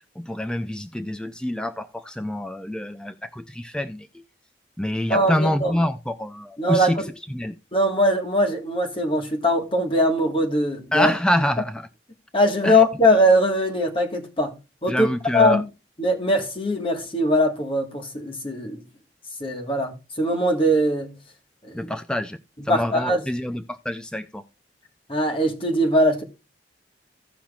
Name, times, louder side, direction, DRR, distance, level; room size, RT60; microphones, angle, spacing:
voice 1, 0.2-4.1 4.8-7.0 7.3-7.6 10.9-11.9 12.6-12.8 14.9-15.6 21.7-22.4 22.7-24.4, left 1 dB, 5° left, 0.4 m, -26 dB
voice 2, 5.1-5.7 6.6-6.9 7.7-11.1 12.3-14.5 14.8-15.1 15.3-15.6 16.0-18.8 19.4-21.1 21.7-21.9 22.6-23.2 25.1-26.2, equal, 30° left, 1.5 m, -21 dB
16.5 x 5.9 x 2.4 m
head